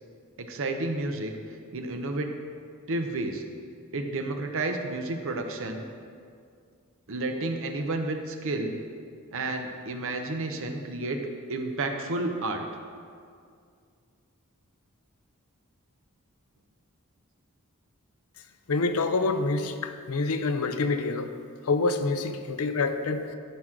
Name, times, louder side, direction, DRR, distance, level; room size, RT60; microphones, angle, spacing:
voice 1, 0.4-1.3 1.7-2.3 2.9-3.4 3.9-5.8 7.1-8.8 9.3-11.2 11.5-12.7, right 2 dB, 65° right, 5 dB, 0.8 m, -31 dB
voice 2, 18.7-21.3 21.7-23.4, left 3 dB, 75° left, 8 dB, 0.6 m, -27 dB
14.0 x 6.1 x 3.8 m, 2.2 s
head